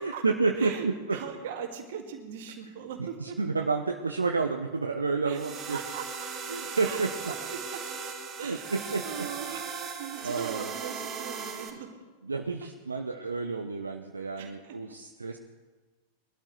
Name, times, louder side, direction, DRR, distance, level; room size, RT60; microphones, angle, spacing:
voice 1, 0.0-1.2 3.2-5.8 6.5-7.1 8.4-9.3 10.2-10.7 12.2-15.4, right 4 dB, 75° right, 4 dB, 0.7 m, -30 dB
voice 2, 0.6-3.4 5.3-5.4 5.7-6.1 6.8-7.8 8.4-8.7 9.0-11.9 12.6-12.7 14.4-14.8, right 7 dB, 55° right, 3 dB, 2.0 m, -40 dB
sound 1, 5.3-11.7, right 5 dB, 20° right, 3.5 m, -38 dB
22.0 x 12.5 x 3.2 m, 1.3 s
figure-of-eight pair, 90°, 0 cm